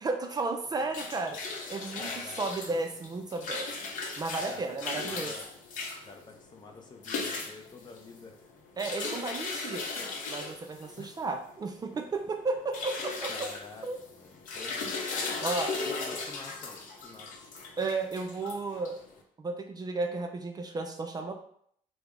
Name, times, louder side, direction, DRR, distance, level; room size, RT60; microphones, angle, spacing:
voice 1, 0.0-1.4 1.7-2.1 2.4-3.7 4.2-5.3 8.8-9.9 10.3-13.3 13.8-14.0 15.4-15.8 17.8-19.0 19.4-21.3, right 3 dB, 30° right, 5 dB, 0.3 m, -33 dB
sound 1, 0.6-19.2, left 4 dB, 70° left, 0.7 m, -38 dB
voice 2, 2.0-2.4 4.5-4.6 5.0-5.5 6.0-8.5 11.0-11.1 13.3-14.9 15.9-17.5, left 4 dB, 30° left, 3 dB, 0.5 m, -48 dB
3.4 x 2.0 x 3.5 m, 0.66 s
cardioid pair, 90°, 14 cm